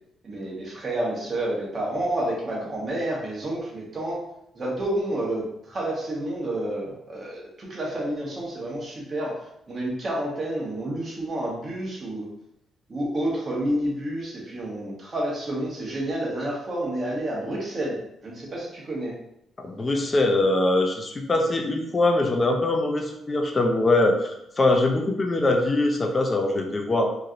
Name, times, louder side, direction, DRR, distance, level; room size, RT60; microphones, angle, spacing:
voice 1, 0.2-4.2 4.5-9.4 9.7-12.3 12.9-19.1, right 1 dB, 40° right, -3 dB, 1.1 m, -29 dB
voice 2, 19.6-27.1, left 2 dB, 30° left, 2 dB, 0.5 m, -22 dB
3.0 x 2.6 x 2.5 m, 0.80 s
cardioid pair, 90°, 0 cm